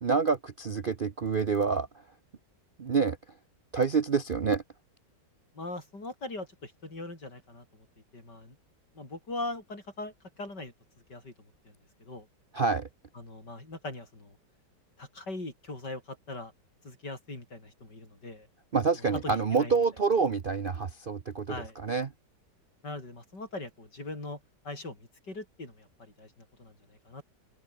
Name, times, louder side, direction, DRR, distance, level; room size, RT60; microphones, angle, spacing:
voice 1, 0.0-1.9 2.8-3.2 3.7-4.6 12.5-12.9 18.7-21.5 21.8-22.1, right 5 dB, 45° right, 0.8 m, -27 dB
voice 2, 5.5-7.9 8.1-8.6 8.9-10.7 11.1-11.3 11.6-11.7 12.0-12.3 13.1-14.4 15.0-16.5 16.8-18.5 19.0-19.8 21.5-21.8 22.8-27.2, left 2 dB, 70° left, 7.9 m, -41 dB
open air
omnidirectional pair, 1.9 m